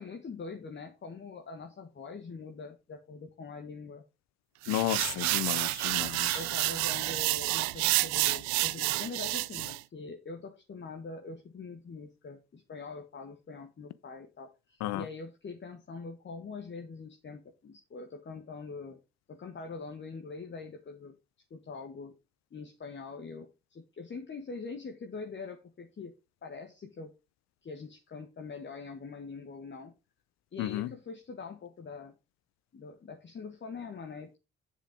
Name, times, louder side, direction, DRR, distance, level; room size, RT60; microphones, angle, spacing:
voice 1, 0.0-4.0 6.3-19.0 19.3-21.2 21.5-22.1 22.5-26.1 26.4-27.1 27.6-29.9 30.5-32.1 32.7-34.4, left 4 dB, 35° left, 1.6 m, -43 dB
sound 1, 4.6-9.8, right 21 dB, 65° right, 0.5 m, -29 dB
voice 2, 4.7-6.4 14.8-15.1 30.6-30.9, left 15 dB, 60° left, 0.7 m, -32 dB
7.7 x 6.8 x 5.2 m
hypercardioid pair, 55°, 30 cm